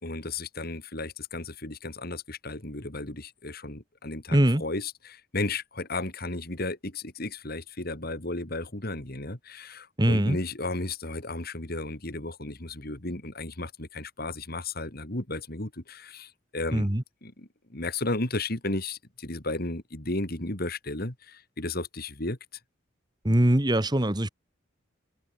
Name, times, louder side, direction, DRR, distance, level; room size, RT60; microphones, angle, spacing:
voice 1, 0.0-16.9 17.2-22.4, left 2 dB, 50° left, 3.1 m, -34 dB
voice 2, 4.3-4.6 10.0-10.4 16.7-17.0 23.2-24.3, right 1 dB, 20° right, 1.3 m, -22 dB
open air
head